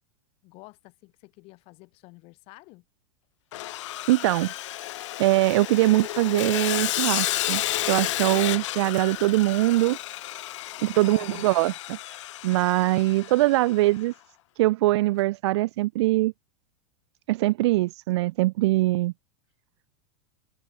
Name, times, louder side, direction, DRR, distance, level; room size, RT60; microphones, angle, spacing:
voice 1, 0.4-2.9 11.0-11.5, left 25 dB, 40° left, 2.0 m, -48 dB
Sawing, 3.5-13.8, left 16 dB, 80° left, 0.5 m, -32 dB
voice 2, 4.1-4.9 5.2-7.6 7.9-10.0 10.8-12.0 12.4-14.1 14.6-16.3 17.3-19.1, right 18 dB, 65° right, 0.4 m, -22 dB
supercardioid pair, 160°, 15 cm